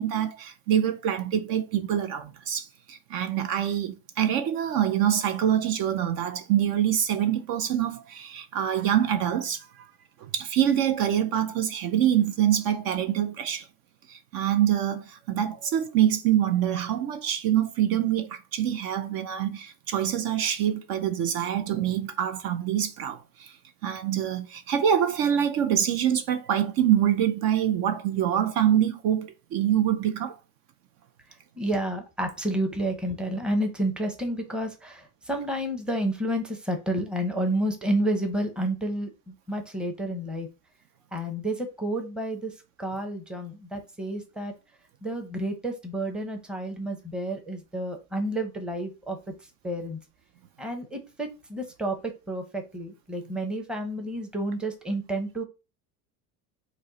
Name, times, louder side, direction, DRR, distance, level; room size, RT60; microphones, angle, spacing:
voice 1, 0.0-9.9 10.2-13.7 14.1-23.5 23.8-30.4, right 10 dB, 50° right, 0.5 m, -25 dB
voice 2, 31.6-40.5 41.1-42.5 42.8-44.5 45.0-49.2 49.6-50.0 50.6-52.0 52.3-55.4, right 1 dB, ahead, 0.7 m, -30 dB
5.2 x 2.1 x 3.9 m
supercardioid pair, 130°, 44 cm